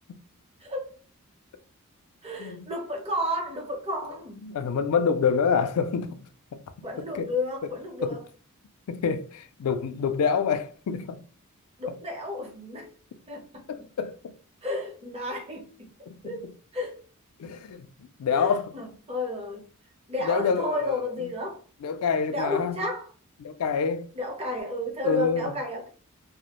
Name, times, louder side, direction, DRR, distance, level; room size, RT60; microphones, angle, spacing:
voice 1, 0.6-0.9 2.2-4.5 6.8-8.2 11.8-12.9 13.3-13.6 14.6-15.9 16.2-16.5 16.7-17.0 18.3-19.7 20.1-21.6 22.3-23.1 24.1-25.9, left 1 dB, 25° right, 0.7 m, -32 dB
voice 2, 2.4-2.7 4.4-6.2 6.5-6.6 7.1-7.3 7.6-7.7 8.0-8.2 8.9-11.2 13.7-14.3 16.1-16.3 17.4-17.9 18.2-18.7 20.2-21.0 21.8-22.8 23.4-24.1 25.0-25.5, left 6 dB, 75° left, 0.3 m, -27 dB
2.3 x 2.0 x 2.8 m
head